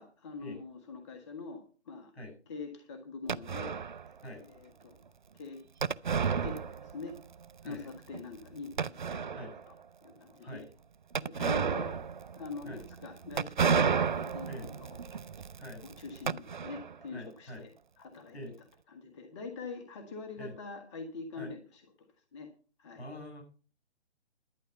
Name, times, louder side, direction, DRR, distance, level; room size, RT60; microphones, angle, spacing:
voice 1, 0.0-2.1 2.5-3.8 4.1-5.0 5.3-5.6 6.4-7.2 7.6-9.7 10.0-10.6 11.2-12.0 12.4-15.0 15.8-18.4 18.9-22.1 22.3-22.5 22.8-23.0, left 4 dB, 25° left, 5 dB, 1.5 m, -44 dB
sound 1, 3.3-4.1 5.8-7.2 7.4-7.5 8.1-8.2 8.8-9.6 11.1-17.0, right 6 dB, 45° right, 0.5 m, -32 dB
voice 2, 17.1-17.6 18.3-18.5 20.4-20.5 21.4-21.5 22.9-23.4, left 1 dB, 60° left, 4 dB, 7.9 m, -44 dB
12.0 x 9.8 x 5.5 m, 0.38 s
figure-of-eight pair, 145°, 35 cm